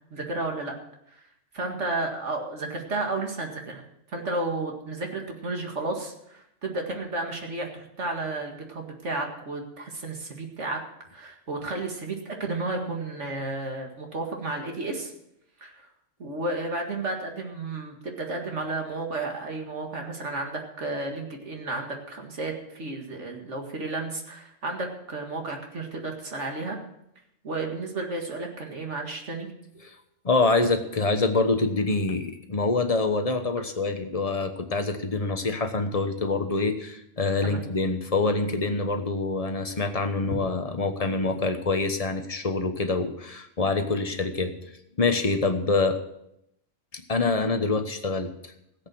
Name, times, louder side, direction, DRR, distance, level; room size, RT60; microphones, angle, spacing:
voice 1, 0.1-0.7 1.1-1.2 1.5-3.8 4.1-10.8 11.1-15.1 15.6-15.7 16.2-26.8 27.4-29.5 37.4-37.7, right 2 dB, 70° right, 2 dB, 2.3 m, -32 dB
voice 2, 30.2-44.6 45.0-46.0 46.9-48.3, left 3 dB, 30° left, 7 dB, 1.2 m, -25 dB
16.0 x 8.2 x 6.2 m, 0.78 s
omnidirectional pair, 1.3 m